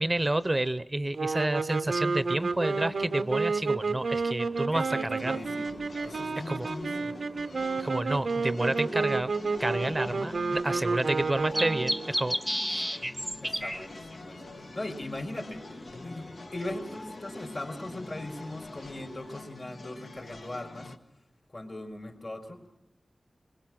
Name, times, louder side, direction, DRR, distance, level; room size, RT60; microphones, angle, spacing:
voice 1, 0.0-5.4 6.5-6.7 7.8-9.3 9.6-12.4 12.7-13.0, right 1 dB, 30° right, 14 dB, 0.7 m, -29 dB
sound 1, 1.1-12.1, right 4 dB, 80° right, 0.7 m, -31 dB
sound 2, 2.1-19.4, equal, ahead, 0.8 m, -40 dB
voice 2, 4.7-7.2 9.7-10.2 13.4-15.6 16.0-20.9 21.5-22.6, left 1 dB, 55° left, 4 dB, 4.0 m, -40 dB
sound 3, 5.2-21.0, left 3 dB, 80° left, 1.3 m, -45 dB
22.0 x 21.5 x 6.0 m, 0.83 s
cardioid pair, 50°, 0 cm